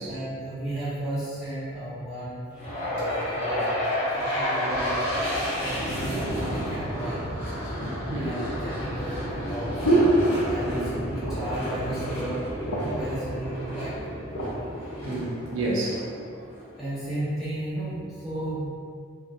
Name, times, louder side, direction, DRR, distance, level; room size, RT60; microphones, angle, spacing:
voice 1, 0.0-3.8 4.1-7.5 8.2-10.0 10.5-14.1 14.5-14.6 16.8-18.7, right 1 dB, ahead, -14 dB, 0.9 m, -35 dB
sound 1, 2.6-16.7, equal, 30° left, 0.8 m, -31 dB
sound 2, 7.8-10.9 11.2-11.6 12.0-12.1 12.4-13.1 13.8-14.5 15.2-15.4, right 2 dB, 90° left, 0.5 m, -27 dB
voice 2, 14.7-16.5, right 2 dB, 70° right, -5 dB, 0.5 m, -31 dB
2.4 x 2.1 x 2.5 m, 2.3 s
head